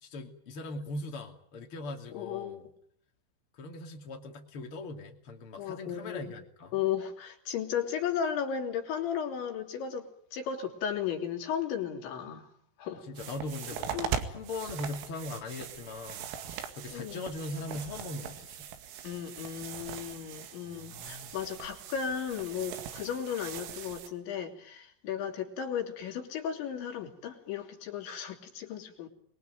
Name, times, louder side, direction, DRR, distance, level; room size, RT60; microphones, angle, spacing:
voice 1, 0.0-2.7 3.6-6.8 12.9-14.0 14.3-18.7 20.6-21.3, left 2 dB, 35° left, 4 dB, 2.4 m, -40 dB
voice 2, 2.1-2.6 5.6-6.3 6.7-12.5 12.8-13.0 13.9-14.1 16.9-17.2 19.0-29.1, left 8 dB, 65° left, 2 dB, 5.3 m, -35 dB
sound 1, 13.2-24.1, right 8 dB, 85° right, 4.7 m, -40 dB
26.0 x 22.0 x 9.3 m, 0.66 s
omnidirectional pair, 5.8 m